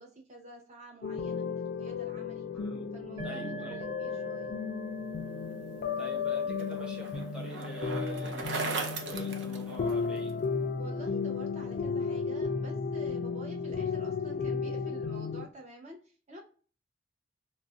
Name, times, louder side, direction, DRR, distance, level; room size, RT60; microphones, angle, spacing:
voice 1, 0.0-2.5 2.9-4.6 10.8-16.4, right 1 dB, 40° right, -1 dB, 0.6 m, -48 dB
sound 1, 1.0-15.5, left 5 dB, 50° left, 0.3 m, -34 dB
voice 2, 2.5-2.9 3.2-3.8 6.0-10.4, right 1 dB, 5° right, -2 dB, 0.8 m, -45 dB
sound 2, 3.2-10.7, right 7 dB, 25° right, 1.2 m, -47 dB
Bicycle, 5.9-10.3, right 4 dB, 90° right, 0.5 m, -38 dB
2.4 x 2.0 x 3.7 m, 0.39 s
head